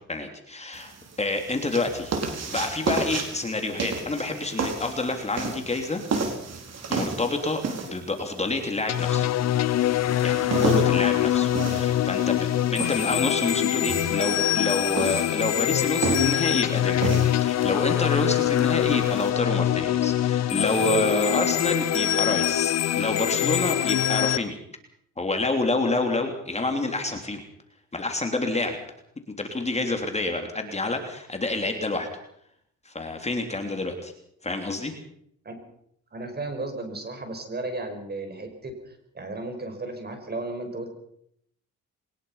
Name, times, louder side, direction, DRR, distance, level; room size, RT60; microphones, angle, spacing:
voice 1, 0.1-0.9 1.2-2.2 2.5-6.0 6.9-9.3 10.2-24.6 25.2-27.4 27.9-28.8 29.4-32.1 32.8-34.1 34.4-34.9, left 2 dB, 20° left, 5 dB, 3.2 m, -28 dB
sound 1, 0.7-19.3, right 4 dB, 60° right, 4.2 m, -33 dB
sound 2, 8.9-24.4, left 12 dB, 60° left, 0.7 m, -24 dB
voice 2, 36.1-40.9, right 2 dB, 35° right, 6 dB, 5.5 m, -34 dB
22.5 x 20.5 x 5.7 m, 0.72 s
cardioid pair, 90°, 30 cm